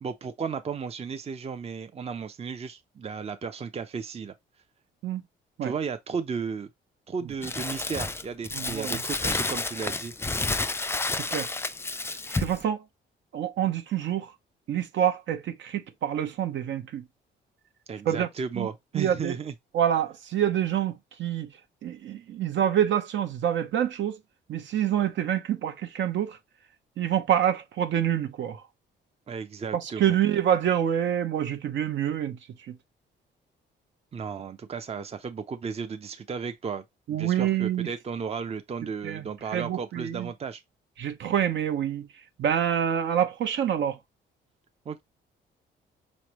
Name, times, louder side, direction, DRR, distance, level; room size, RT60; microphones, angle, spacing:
voice 1, 0.0-4.3 5.6-6.7 7.1-10.1 17.9-19.5 29.3-30.2 34.1-36.8 37.1-40.6 44.9-45.0, right 6 dB, 30° right, 0.6 m, -34 dB
Crumpling crinkling, 7.4-12.6, left 3 dB, 10° left, 0.4 m, -30 dB
voice 2, 8.5-9.0 11.1-11.5 12.1-12.8 13.3-14.3 14.7-17.0 18.1-18.3 18.6-18.7 18.9-19.4 19.7-21.5 21.8-24.2 24.5-26.4 27.0-28.6 29.7-32.4 32.7-32.8 37.1-37.9 39.0-39.3 39.5-40.3 41.0-42.1 42.4-44.0, right 10 dB, 65° right, 0.9 m, -27 dB
5.2 x 3.2 x 3.0 m
cardioid pair, 90°, 20 cm